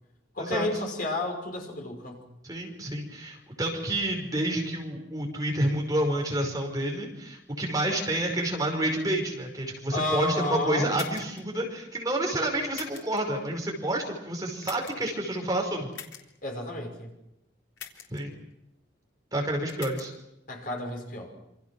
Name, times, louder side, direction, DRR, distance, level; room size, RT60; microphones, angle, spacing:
voice 1, 0.3-2.2 9.9-11.0 16.4-17.1 20.5-21.3, left 2 dB, 50° left, 2 dB, 6.0 m, -31 dB
voice 2, 2.4-15.9 18.1-18.3 19.3-20.1, right 1 dB, 20° right, 1 dB, 5.3 m, -29 dB
sound 1, 10.9-11.4 12.7-13.2 14.6-15.1 15.9-16.2 17.8-18.2 19.7-20.1, left 7 dB, 80° left, 3.7 m, -42 dB
27.5 x 26.5 x 6.2 m, 0.85 s
head